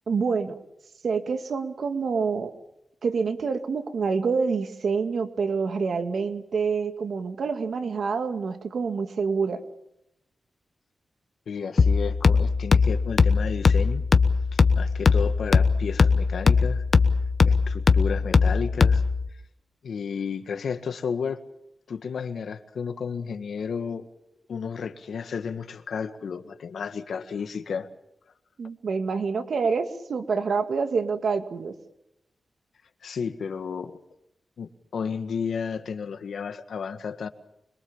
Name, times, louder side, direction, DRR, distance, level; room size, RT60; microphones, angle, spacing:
voice 1, 0.1-0.5 1.0-2.5 3.0-9.6 28.6-31.7, right 5 dB, 65° right, 7 dB, 2.1 m, -27 dB
voice 2, 11.5-14.0 14.5-16.8 17.5-19.0 19.8-21.4 21.9-24.1 24.5-27.9 33.0-34.0 34.6-37.3, left 6 dB, 90° left, 9 dB, 1.7 m, -32 dB
sound 1, 11.8-19.3, left 5 dB, 45° left, 1.1 m, -20 dB
26.0 x 22.5 x 7.3 m, 0.82 s
wide cardioid pair, 165°, 0 cm